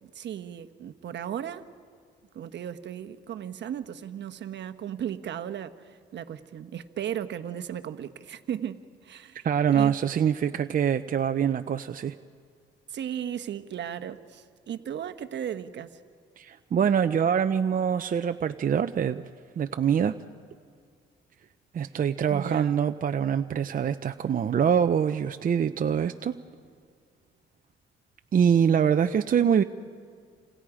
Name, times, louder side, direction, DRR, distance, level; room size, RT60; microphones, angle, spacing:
voice 1, 0.0-1.7 2.3-10.0 12.9-16.0 22.3-22.8, right 9 dB, 65° right, 1.2 m, -36 dB
voice 2, 9.4-12.1 16.4-19.2 19.6-20.2 21.7-26.4 28.3-29.6, right 8 dB, 45° right, 0.7 m, -24 dB
29.5 x 27.0 x 5.0 m
cardioid pair, 90°, 20 cm